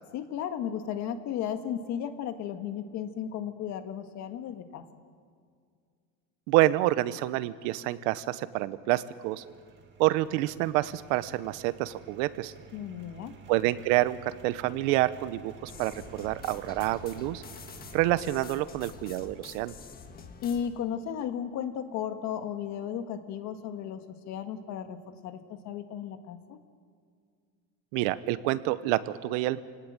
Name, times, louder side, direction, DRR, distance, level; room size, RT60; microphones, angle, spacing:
voice 1, 0.1-4.8 12.7-13.3 20.4-26.6, left 9 dB, 45° left, 8 dB, 1.7 m, -35 dB
voice 2, 6.5-9.4 10.0-12.5 13.5-17.4 17.9-19.7 27.9-29.6, right 16 dB, 80° right, 15 dB, 1.1 m, -28 dB
sound 1, 9.2-18.2, right 6 dB, 30° right, 2.1 m, -52 dB
sound 2, 15.7-20.7, left 5 dB, 25° left, 1.6 m, -47 dB
27.5 x 18.5 x 8.9 m, 2.1 s
cardioid pair, 165°, 37 cm